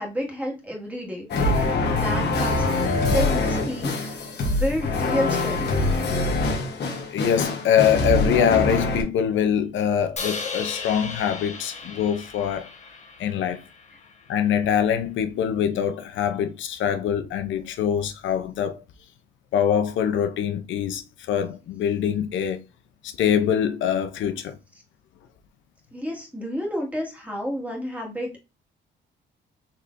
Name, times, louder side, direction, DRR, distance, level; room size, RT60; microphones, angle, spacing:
voice 1, 0.0-2.6 3.1-5.7 25.9-28.4, equal, 5° right, 1.8 m, -30 dB
sound 1, 1.3-9.0, left 2 dB, 60° left, 1.2 m, -24 dB
voice 2, 7.1-12.7 13.2-13.6 14.3-18.8 19.5-22.6 23.0-24.6, left 8 dB, 75° left, 0.6 m, -24 dB
Crash cymbal, 10.2-14.3, left 4 dB, 35° left, 1.0 m, -36 dB
4.2 x 3.2 x 2.5 m
cardioid pair, 90°, 20 cm